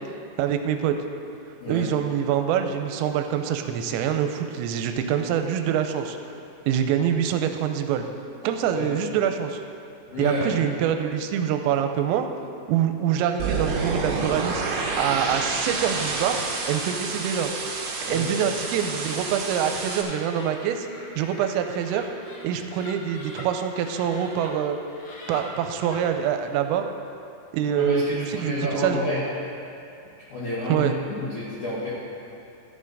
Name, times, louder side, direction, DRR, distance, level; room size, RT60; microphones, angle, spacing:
voice 1, 0.4-1.0 1.7-6.2 6.7-8.1 8.4-9.6 10.2-12.3 12.7-14.6 15.0-17.5 18.0-20.9 21.2-22.1 22.4-24.8 25.3-26.9 27.5-29.0 30.7-30.9, right 9 dB, 90° right, 6 dB, 3.2 m, -25 dB
voice 2, 10.1-10.5 18.1-18.3 27.8-29.2 30.3-31.9, left 1 dB, 70° left, -9 dB, 1.8 m, -30 dB
sound 1, 13.4-20.0, right 4 dB, 70° right, 3.0 m, -29 dB
Laughter, 18.3-24.5 24.9-26.1, left 2 dB, 90° left, 1.7 m, -44 dB
13.5 x 8.6 x 4.0 m, 2.6 s
omnidirectional pair, 5.8 m